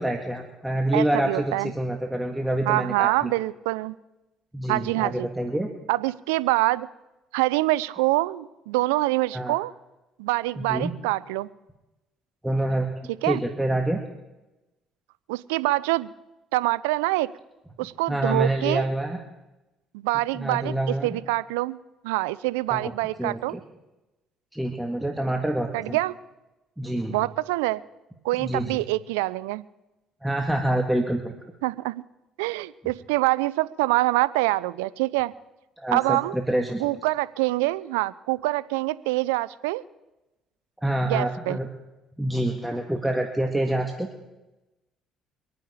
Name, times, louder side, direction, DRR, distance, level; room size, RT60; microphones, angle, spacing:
voice 1, 0.0-3.3 4.5-5.7 9.3-9.5 10.6-10.9 12.4-14.0 18.1-19.2 20.3-21.1 22.7-22.9 23.2-23.6 24.5-26.0 26.8-27.2 28.4-28.8 30.2-31.3 35.8-36.9 40.8-41.7 42.2-44.1, right 1 dB, 5° right, 2 dB, 1.9 m, -27 dB
voice 2, 0.9-1.7 2.7-4.0 4.7-5.3 5.9-6.9 7.3-9.7 10.2-11.5 13.2-13.4 15.3-16.1 16.5-17.3 17.8-18.9 19.9-21.8 22.0-23.6 25.7-26.1 27.1-27.8 28.2-29.6 31.6-31.9 32.4-35.3 35.9-36.4 36.8-39.8 41.0-41.6, right 19 dB, 90° right, 19 dB, 0.5 m, -25 dB
24.5 x 9.3 x 5.0 m, 1.0 s
supercardioid pair, 65°, 0 cm